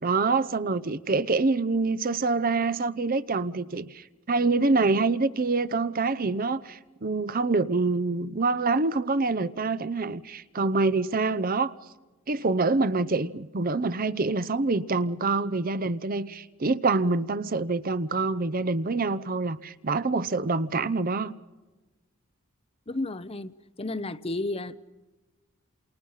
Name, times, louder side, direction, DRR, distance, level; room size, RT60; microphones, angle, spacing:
voice 1, 0.0-11.7 12.3-21.3, right 3 dB, 40° right, 0.8 m, -26 dB
voice 2, 22.9-23.5 23.8-24.8, left 2 dB, 25° left, 0.8 m, -32 dB
28.5 x 28.5 x 5.7 m
head